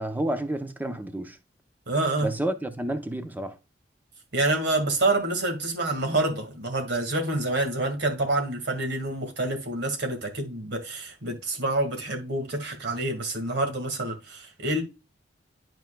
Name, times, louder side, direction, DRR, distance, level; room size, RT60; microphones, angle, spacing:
voice 1, 0.0-1.4 2.2-3.6, right 1 dB, 10° right, 0.8 m, -30 dB
voice 2, 1.9-2.3 4.3-14.8, right 2 dB, 65° right, 2.0 m, -27 dB
11.5 x 4.5 x 2.3 m
head